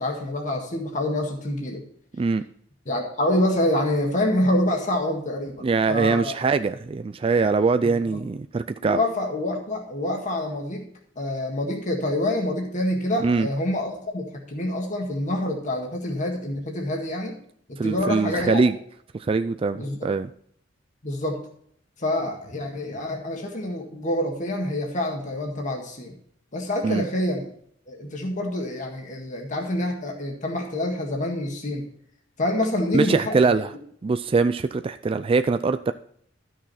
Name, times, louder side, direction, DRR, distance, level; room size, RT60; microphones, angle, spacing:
voice 1, 0.0-1.8 2.9-6.4 7.8-8.2 8.8-10.9 11.2-17.4 17.7-18.7 19.7-20.1 21.0-21.4 22.0-26.1 26.5-27.5 27.9-31.8 32.4-33.6, left 1 dB, 40° left, 1 dB, 1.8 m, -27 dB
voice 2, 5.6-9.0 13.2-13.5 17.8-18.7 19.2-20.3 26.8-27.0 32.9-33.7 34.0-35.9, right 4 dB, 30° right, 10 dB, 0.3 m, -22 dB
12.5 x 6.3 x 4.2 m, 0.65 s
head